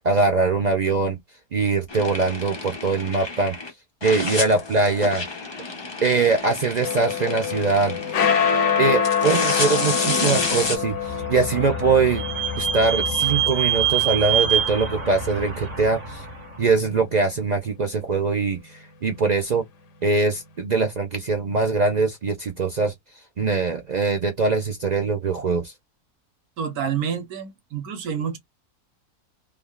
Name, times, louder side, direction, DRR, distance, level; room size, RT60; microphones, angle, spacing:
voice 1, 0.0-1.2 1.5-3.6 4.0-5.2 6.0-8.0 8.8-12.2 12.6-16.3 16.6-19.6 20.0-22.9 23.4-25.7, right 4 dB, 65° right, 0.4 m, -22 dB
sound 1, 1.9-3.7 4.0-10.8, left 3 dB, 35° left, 0.4 m, -29 dB
sound 2, 6.8-15.4, left 7 dB, 60° left, 0.9 m, -26 dB
Vehicle / Squeak, 10.8-16.4, right 7 dB, 30° right, 0.8 m, -25 dB
voice 2, 26.6-28.4, right 7 dB, 80° right, 1.4 m, -28 dB
3.5 x 2.2 x 2.2 m
omnidirectional pair, 1.6 m